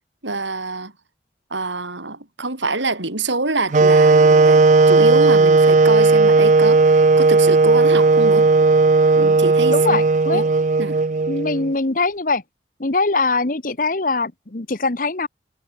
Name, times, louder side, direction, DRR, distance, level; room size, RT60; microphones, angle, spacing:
voice 1, 0.2-0.9 1.5-8.5 9.1-10.0 10.3-10.4 10.8-11.0, right 3 dB, 90° right, 5.2 m, -26 dB
sound 1, 3.7-11.7, right 3 dB, 45° right, 0.5 m, -14 dB
voice 2, 9.7-10.5 11.3-12.4 12.8-15.3, left 3 dB, 45° left, 1.2 m, -22 dB
head